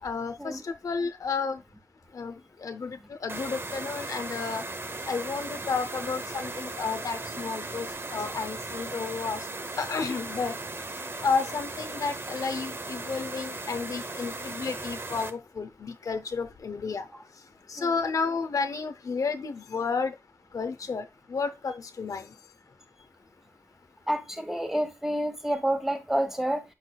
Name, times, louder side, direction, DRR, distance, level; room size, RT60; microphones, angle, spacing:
voice 1, 0.0-1.6 2.1-4.7 5.0-9.5 9.8-10.6 11.2-20.2 20.5-22.4, left 5 dB, 90° left, 0.7 m, -32 dB
sound 1, 3.3-15.3, right 2 dB, 45° right, 0.9 m, -37 dB
voice 2, 24.1-26.6, right 1 dB, 5° right, 1.6 m, -28 dB
8.0 x 6.1 x 2.3 m
cardioid pair, 50°, 6 cm